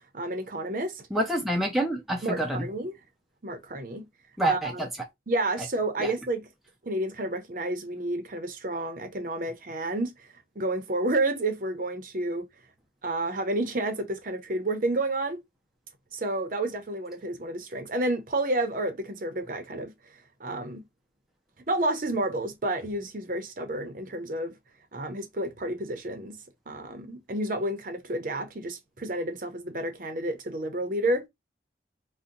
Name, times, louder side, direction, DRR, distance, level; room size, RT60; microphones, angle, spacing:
voice 1, 0.1-1.0 2.2-2.9 3.4-4.1 4.4-4.8 5.3-6.5 6.8-10.3 10.6-12.5 13.0-15.4 16.1-19.9 20.4-20.8 21.7-24.5 24.9-26.4 26.7-31.3, right 1 dB, 50° right, 0.6 m, -30 dB
voice 2, 1.1-2.7 4.4-4.9 6.0-6.1, right 1 dB, ahead, 0.4 m, -27 dB
2.6 x 2.1 x 3.7 m
head